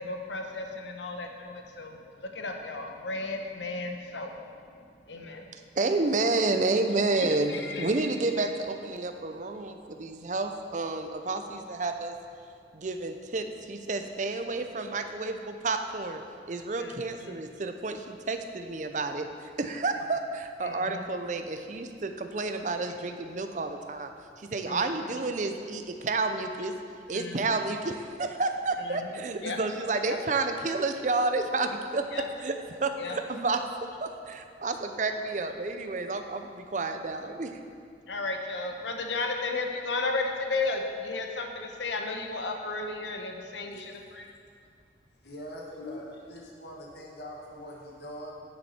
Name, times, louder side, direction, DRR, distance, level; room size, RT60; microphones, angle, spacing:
voice 1, 0.0-4.6 5.1-5.5 7.1-8.1 16.8-16.9 17.2-17.4 20.6-21.0 24.7-24.9 27.1-27.5 28.8-29.1 29.4-29.6 30.0-30.2 32.1-32.3 33.0-33.2 38.0-44.3 45.8-46.0, left 3 dB, 85° left, 3 dB, 0.9 m, -34 dB
voice 2, 5.8-12.2 12.7-16.2 16.5-24.1 24.4-26.7 27.1-32.1 32.4-32.6 32.8-33.6 34.0-37.6, right 3 dB, 45° right, 7 dB, 0.5 m, -30 dB
voice 3, 45.2-48.3, equal, 65° left, -2 dB, 1.4 m, -43 dB
9.7 x 7.2 x 4.3 m, 2.4 s
head